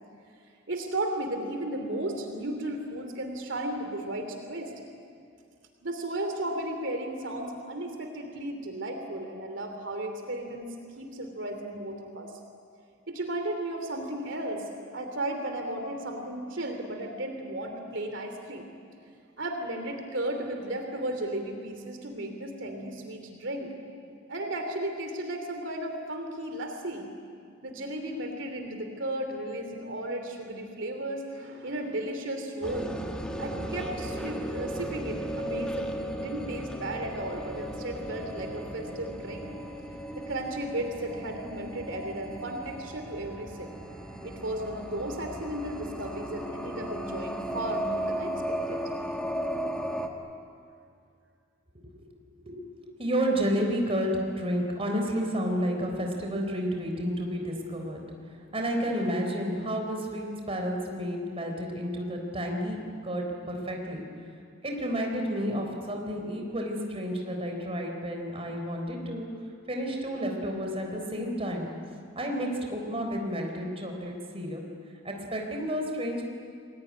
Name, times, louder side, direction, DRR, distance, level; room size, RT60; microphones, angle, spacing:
voice 1, 0.7-4.7 5.8-12.3 13.1-14.6 14.9-18.7 19.4-23.7 24.3-27.1 27.6-32.9 33.4-39.5 40.1-43.7 44.2-48.4 48.7-48.8, right 1 dB, 70° right, 4 dB, 2.9 m, -34 dB
sound 1, 32.6-50.1, right 1 dB, 5° left, 1.9 m, -36 dB
voice 2, 52.3-52.7 53.0-58.0 58.5-64.0 64.6-69.3 69.7-71.7 72.2-74.6 75.0-76.2, equal, 30° right, 2 dB, 4.0 m, -31 dB
29.0 x 21.0 x 9.6 m, 2.3 s
head